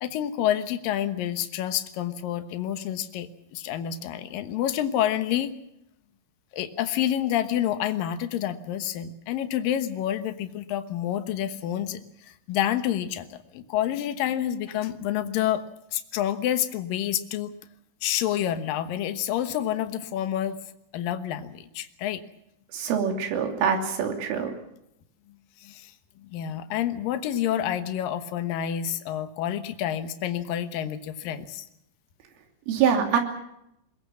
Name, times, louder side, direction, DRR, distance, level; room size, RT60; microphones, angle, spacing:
voice 1, 0.0-5.5 6.5-12.0 12.3-15.7 15.9-17.5 18.0-20.6 20.9-22.2 25.6-25.9 26.3-31.6, left 11 dB, 70° left, 9 dB, 2.2 m, -28 dB
voice 2, 22.7-24.6 32.7-33.2, right 7 dB, 80° right, 4 dB, 5.4 m, -24 dB
22.0 x 22.0 x 7.4 m, 0.81 s
omnidirectional pair, 5.6 m